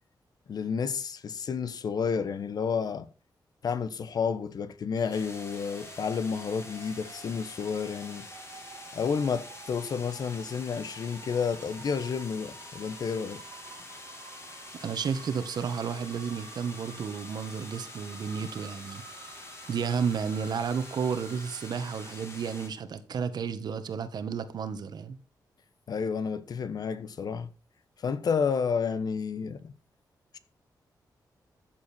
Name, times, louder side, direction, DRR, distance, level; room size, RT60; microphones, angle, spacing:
voice 1, 0.5-3.1 3.6-8.3 8.9-13.4 25.9-27.5 28.0-29.7 30.3-30.4, left 6 dB, 60° left, 1.1 m, -30 dB
sound 1, 4.9-21.7, right 7 dB, 85° right, 1.4 m, -50 dB
sound 2, 5.1-22.7, left 3 dB, 35° left, 3.4 m, -46 dB
voice 2, 14.7-19.0 19.7-25.2, right 6 dB, 65° right, 1.5 m, -32 dB
14.0 x 7.8 x 4.4 m
wide cardioid pair, 130°, 8 cm